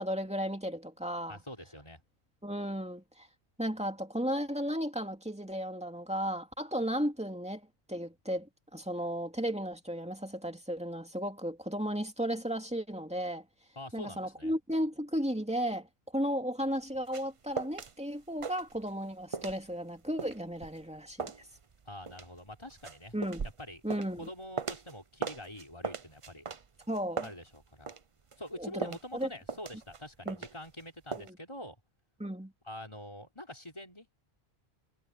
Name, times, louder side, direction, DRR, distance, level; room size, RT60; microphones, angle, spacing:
voice 1, 0.0-1.4 2.4-3.3 3.6-7.6 7.9-13.4 13.9-15.9 16.1-21.3 23.1-23.4 23.8-24.3 26.9-27.3 28.6-29.3 30.3-30.4 31.2-31.4 32.2-32.5, equal, 5° right, 2.6 m, -34 dB
voice 2, 1.3-2.0 13.8-14.5 21.8-23.2 23.6-23.8 24.1-26.5 27.2-27.9 28.4-31.8 32.6-34.1, left 1 dB, 25° left, 4.7 m, -45 dB
sound 1, 16.7-17.9 18.2-19.1 19.3-24.9 25.2-28.0 28.3-30.8 31.1-31.3, right 5 dB, 35° right, 0.7 m, -39 dB
omnidirectional pair, 1.1 m